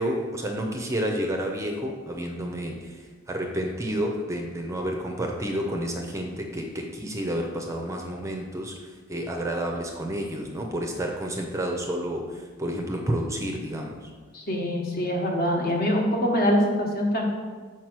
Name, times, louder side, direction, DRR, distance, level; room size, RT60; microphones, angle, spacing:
voice 1, 0.0-8.7 9.1-14.1, equal, 15° right, 2 dB, 0.5 m, -30 dB
voice 2, 14.3-17.3, equal, 45° left, 0 dB, 1.1 m, -24 dB
4.7 x 4.5 x 6.0 m, 1.5 s
head